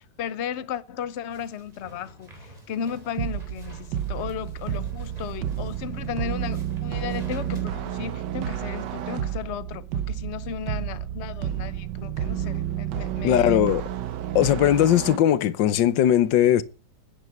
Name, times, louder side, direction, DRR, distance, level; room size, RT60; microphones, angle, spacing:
voice 1, 0.0-13.7, left 8 dB, 50° left, 0.9 m, -35 dB
sound 1, 1.3-7.6, right 1 dB, 20° right, 3.7 m, -49 dB
sound 2, 3.2-15.2, right 10 dB, 75° right, 1.5 m, -30 dB
voice 2, 13.2-13.8 14.3-16.6, left 11 dB, 85° left, 1.5 m, -19 dB
10.5 x 9.7 x 7.9 m
omnidirectional pair, 1.9 m